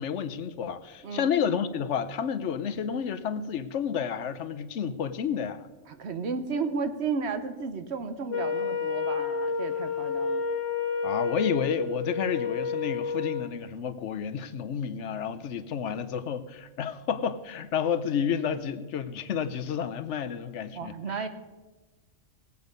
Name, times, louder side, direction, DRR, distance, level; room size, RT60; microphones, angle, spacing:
voice 1, 0.0-5.7 11.0-21.3, left 7 dB, 75° left, 12 dB, 1.0 m, -30 dB
voice 2, 5.9-10.4 20.7-21.3, right 5 dB, 65° right, 9 dB, 1.2 m, -33 dB
Wind instrument woodwind instrument, 8.3-13.5, left 5 dB, 35° left, 0.6 m, -30 dB
18.5 x 8.2 x 5.3 m, 1.2 s
omnidirectional pair, 1.2 m